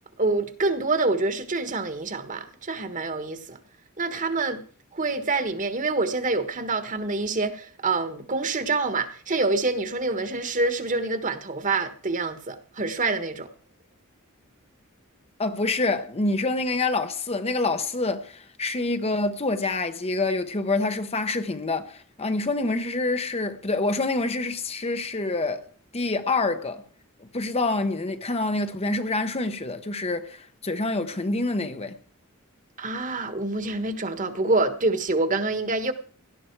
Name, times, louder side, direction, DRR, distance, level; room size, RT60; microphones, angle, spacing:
voice 1, 0.2-3.6 4.0-4.6 4.9-13.5 32.8-35.9, right 3 dB, 35° right, 1.5 m, -26 dB
voice 2, 15.4-25.7 25.9-26.8 27.2-31.9, left 2 dB, 30° left, 0.9 m, -27 dB
17.5 x 12.0 x 4.7 m
head